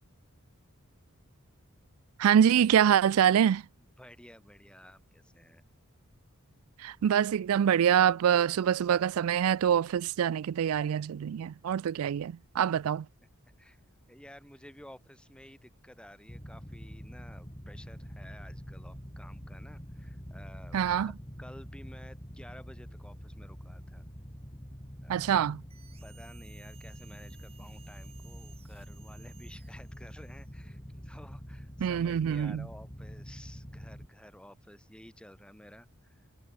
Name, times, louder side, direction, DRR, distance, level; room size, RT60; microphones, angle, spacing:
voice 1, 2.2-3.6 6.8-13.1 20.7-21.1 25.1-25.6 31.8-32.7, right 9 dB, 75° right, 0.3 m, -25 dB
voice 2, 4.0-5.6 13.6-13.8 14.1-21.1 21.4-24.1 25.0-25.4 26.0-36.1, equal, 5° left, 7.6 m, -53 dB
sound 1, 16.3-34.1, equal, 20° left, 5.4 m, -46 dB
sound 2, 25.7-30.6, right 6 dB, 25° right, 6.2 m, -58 dB
head